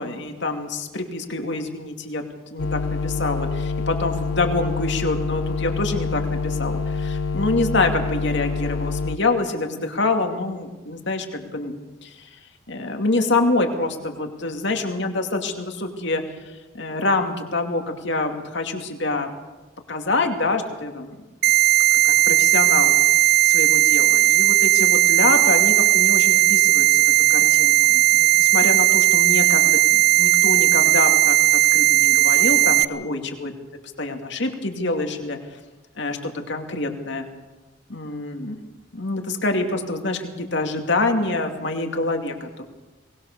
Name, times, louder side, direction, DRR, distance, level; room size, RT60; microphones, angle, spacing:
voice 1, 0.0-2.2 2.5-12.4 12.7-16.2 16.7-19.3 19.9-21.2 22.0-22.9 23.4-33.5 34.0-35.4 36.0-37.3 37.9-38.6 38.9-42.6, left 2 dB, 60° left, 4 dB, 2.5 m, -26 dB
sound 1, 2.6-9.2, left 4 dB, 80° left, 0.7 m, -26 dB
sound 2, 21.4-32.8, right 19 dB, 55° right, 0.7 m, -16 dB
23.0 x 19.5 x 6.8 m, 1.2 s
head